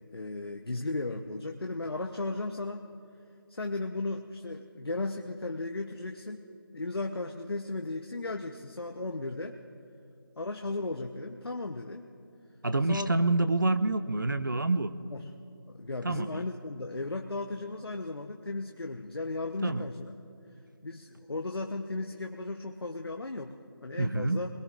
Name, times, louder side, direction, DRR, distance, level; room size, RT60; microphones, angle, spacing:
voice 1, 0.0-2.9 3.5-6.4 6.7-9.6 10.4-12.1 12.9-13.2 15.1-15.3 15.7-20.1 20.8-24.5, left 2 dB, 75° left, 4 dB, 0.9 m, -35 dB
voice 2, 12.6-14.9 16.0-16.4 19.6-19.9 24.0-24.4, right 2 dB, 55° right, 12 dB, 0.6 m, -27 dB
22.0 x 21.5 x 2.5 m, 2.5 s
figure-of-eight pair, 180°, 13 cm